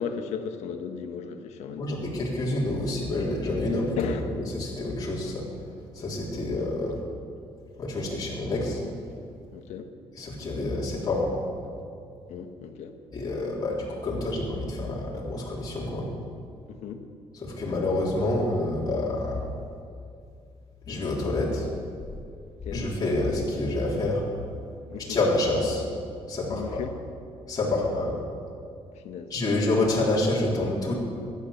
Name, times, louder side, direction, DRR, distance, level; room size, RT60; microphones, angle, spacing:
voice 1, 0.0-2.0 4.0-4.3 9.5-9.9 12.3-12.9 16.7-17.1 22.6-22.9 24.9-25.2 26.5-26.9 27.6-28.3 29.0-29.3, left 7 dB, 85° left, 6 dB, 1.3 m, -36 dB
voice 2, 1.8-4.0 4.6-5.4 6.0-7.0 7.8-8.8 10.2-11.3 13.1-16.1 17.4-19.4 20.9-21.7 22.7-24.2 25.0-25.8 26.3-26.8 27.5-28.2 29.3-30.9, left 2 dB, 35° left, -5 dB, 3.7 m, -27 dB
15.5 x 10.5 x 6.9 m, 2.4 s
cardioid pair, 115°, 11 cm